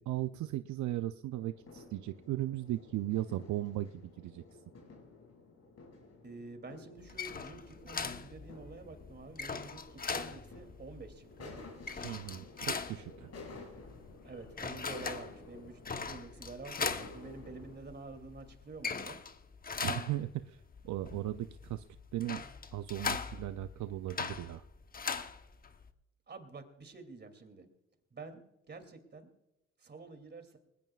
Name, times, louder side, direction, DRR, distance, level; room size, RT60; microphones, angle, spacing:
voice 1, 0.0-4.4 12.0-13.3 19.8-20.6 20.8-21.8 22.1-22.4 22.7-24.6, right 14 dB, 70° right, 11 dB, 0.5 m, -37 dB
sound 1, 1.3-17.8, left 3 dB, 55° left, 6.1 m, -53 dB
voice 2, 6.2-11.5 14.2-15.8 16.1-19.2 26.3-27.7 28.1-28.4 28.7-29.3 29.8-30.6, right 3 dB, 35° right, 7 dB, 2.6 m, -48 dB
sound 2, 7.0-25.9, left 5 dB, 30° left, 1.0 m, -41 dB
20.0 x 20.0 x 2.4 m, 0.90 s
cardioid pair, 90°, 30 cm